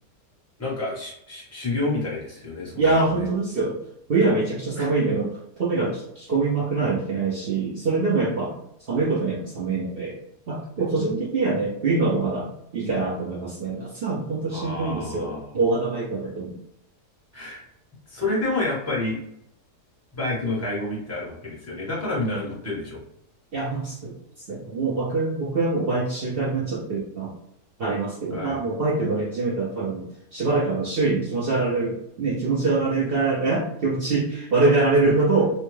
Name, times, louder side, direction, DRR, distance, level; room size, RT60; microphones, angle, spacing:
voice 1, 0.6-2.9 3.2-3.3 4.8-4.9 14.5-15.5 17.3-17.6 18.1-19.2 20.2-23.0 28.3-28.6 35.0-35.1, left 2 dB, 10° left, -5 dB, 0.8 m, -29 dB
voice 2, 2.8-3.8 4.1-8.6 8.9-10.2 10.5-16.5 23.5-24.2 24.5-27.3 27.8-35.5, right 3 dB, 75° right, -6 dB, 0.5 m, -24 dB
2.9 x 2.2 x 3.1 m, 0.78 s
omnidirectional pair, 1.8 m